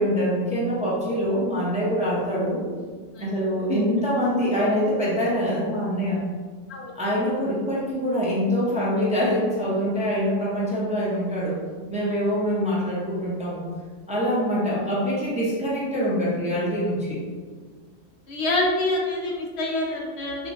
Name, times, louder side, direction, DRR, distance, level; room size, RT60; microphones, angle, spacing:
voice 1, 0.0-2.6 3.2-6.2 6.9-11.6 11.9-13.6 14.1-17.2, equal, 10° right, -7 dB, 0.6 m, -24 dB
voice 2, 18.3-20.5, left 2 dB, 65° left, -1 dB, 0.8 m, -26 dB
5.0 x 2.3 x 2.6 m, 1.5 s
omnidirectional pair, 1.3 m